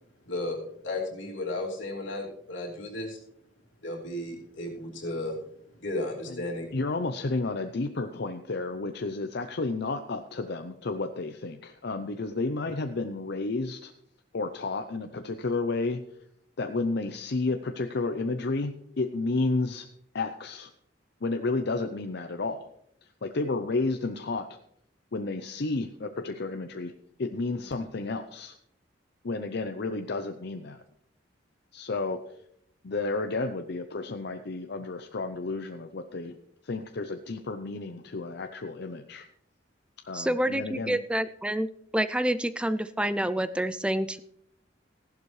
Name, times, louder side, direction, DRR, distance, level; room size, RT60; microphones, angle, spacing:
voice 1, 0.2-3.2 3.8-5.4 5.8-6.7, left 1 dB, 90° left, -1 dB, 2.9 m, -34 dB
voice 2, 6.7-13.9 14.3-16.0 16.6-19.9 20.1-20.7 21.2-22.7 23.2-24.5 25.1-26.9 27.2-28.6 29.2-30.8 31.7-32.2 32.8-36.4 36.6-39.3 40.0-41.0, left 3 dB, 60° left, 7 dB, 0.6 m, -31 dB
voice 3, 40.1-44.2, right 1 dB, 5° right, 13 dB, 0.3 m, -28 dB
15.0 x 11.5 x 3.2 m, 0.72 s
head